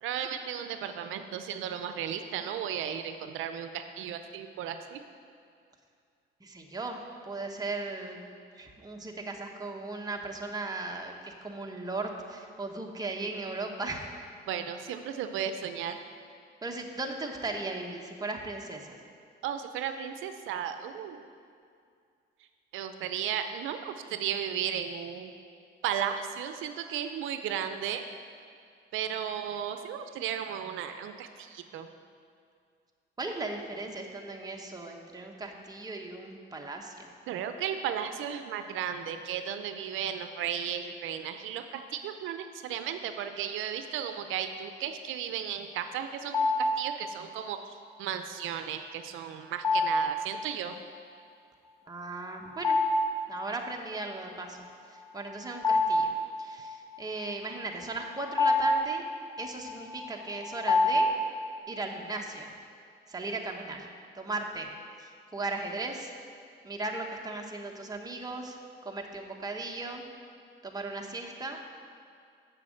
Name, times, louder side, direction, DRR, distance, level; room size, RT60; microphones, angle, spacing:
voice 1, 0.0-5.0 14.5-16.0 19.4-21.3 22.7-25.3 25.8-28.1 28.9-31.9 37.3-50.7, right 9 dB, 85° right, 8 dB, 0.5 m, -35 dB
voice 2, 6.4-8.2 8.6-14.1 16.6-19.0 33.2-37.1 51.9-52.8 53.3-56.1 56.4-59.0 59.4-61.1 61.7-62.5 63.1-64.7 65.0-66.1 66.6-68.6 68.8-70.1 70.6-71.7, right 2 dB, 20° right, 1 dB, 1.2 m, -37 dB
sound 1, 46.3-47.0 49.6-50.3 52.5-53.3 53.6-53.7 55.2-56.7 57.7-61.6, left 2 dB, 15° left, 1.1 m, -27 dB
7.5 x 6.3 x 7.7 m, 2.3 s
cardioid pair, 90°, 20 cm